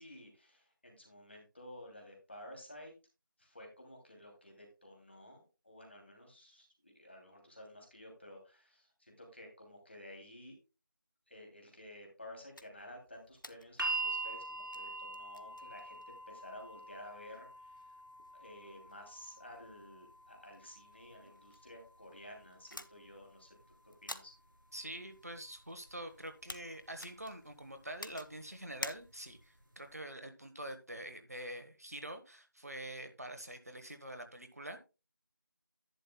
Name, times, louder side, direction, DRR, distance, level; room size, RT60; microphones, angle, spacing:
voice 1, 0.0-2.9 3.4-10.6 11.3-17.9 18.3-23.5 23.8-24.3, left 1 dB, 30° left, 2.9 m, -53 dB
sound 1, 12.5-29.5, left 1 dB, 70° left, 1.0 m, -53 dB
sound 2, 13.8-25.9 26.9-27.0, right 3 dB, 75° right, 2.4 m, -45 dB
voice 2, 24.7-34.8, right 1 dB, 45° right, 1.2 m, -46 dB
11.0 x 9.7 x 2.3 m
figure-of-eight pair, 175°, 11 cm